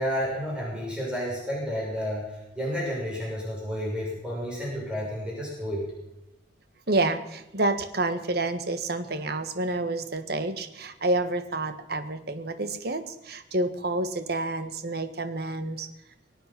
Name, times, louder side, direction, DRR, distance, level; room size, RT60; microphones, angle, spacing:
voice 1, 0.0-5.9, equal, 5° right, -5 dB, 6.4 m, -31 dB
voice 2, 6.9-15.9, right 2 dB, 60° right, 10 dB, 1.5 m, -29 dB
23.0 x 8.9 x 6.0 m, 0.93 s
head